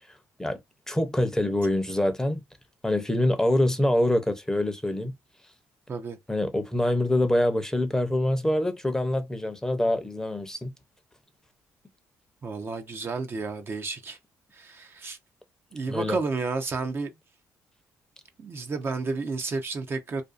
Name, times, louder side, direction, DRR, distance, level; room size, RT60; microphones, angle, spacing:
voice 1, 0.9-2.4 2.8-5.1 6.3-10.7 15.9-16.2, left 1 dB, 10° left, 0.6 m, -25 dB
voice 2, 12.4-14.2 14.5-15.2 15.7-17.1 18.4-20.2, right 3 dB, 35° right, 0.5 m, -31 dB
2.5 x 2.3 x 2.3 m
cardioid pair, 90°, 6 cm